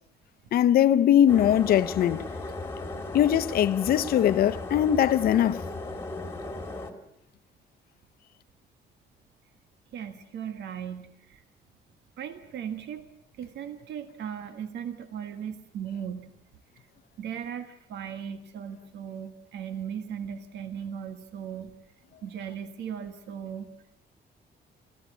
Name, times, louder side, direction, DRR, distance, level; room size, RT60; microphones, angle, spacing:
voice 1, 0.5-2.2 3.1-5.6, left 10 dB, 60° left, 0.7 m, -21 dB
sound 1, 1.3-6.9, left 2 dB, 15° left, 2.1 m, -36 dB
voice 2, 9.9-11.4 12.2-13.0 13.4-16.3 17.2-21.7 22.2-23.7, right 8 dB, 80° right, 1.7 m, -37 dB
24.5 x 16.5 x 8.3 m
cardioid pair, 170°, 18 cm